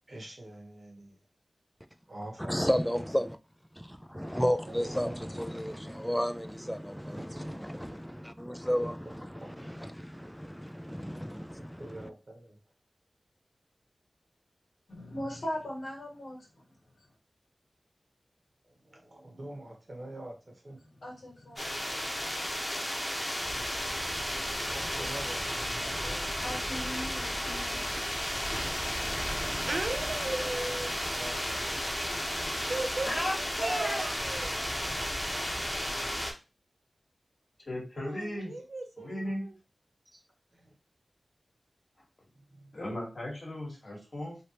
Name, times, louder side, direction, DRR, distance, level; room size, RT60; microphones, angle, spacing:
voice 1, 0.1-1.2 2.1-2.9 4.7-5.2 7.2-7.4 9.2-9.7 11.8-12.6 18.6-20.9 23.9-26.3 31.0-32.0 40.5-40.7 42.3-42.8, right 1 dB, 50° right, 1.2 m, -46 dB
voice 2, 2.5-3.4 3.8-9.1 9.6-11.8, equal, ahead, 0.4 m, -32 dB
voice 3, 14.9-16.5 21.0-22.1 26.4-28.7, left 1 dB, 85° left, 1.4 m, -40 dB
sound 1, 21.6-36.3, equal, 15° left, 1.0 m, -33 dB
voice 4, 29.6-30.9 32.6-34.6 37.9-39.6, right 2 dB, 70° right, 0.6 m, -36 dB
voice 5, 33.1-34.1 37.7-38.5 39.0-39.5 42.7-44.4, left 1 dB, 60° left, 1.5 m, -36 dB
3.4 x 2.6 x 2.9 m
wide cardioid pair, 50°, 0 cm